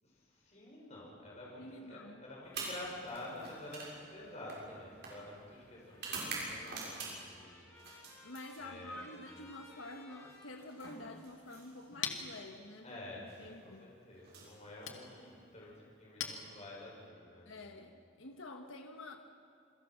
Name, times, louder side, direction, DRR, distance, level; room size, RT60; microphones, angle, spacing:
voice 1, 0.0-8.2 8.6-9.2 12.8-17.5, left 1 dB, 35° left, -3 dB, 6.3 m, -49 dB
voice 2, 1.6-2.2 8.2-13.9 17.4-19.2, left 2 dB, 90° left, 5 dB, 1.4 m, -49 dB
sound 1, 2.4-7.4 7.8-9.0 10.2-12.0 13.1-13.4 14.2-15.3, right 3 dB, 55° right, 6.7 m, -46 dB
Trumpet, 5.7-11.3, left 1 dB, 15° left, 6.4 m, -60 dB
Chink clink, 11.4-17.1, left 7 dB, 70° left, 2.1 m, -47 dB
28.0 x 22.5 x 6.0 m, 2.5 s
head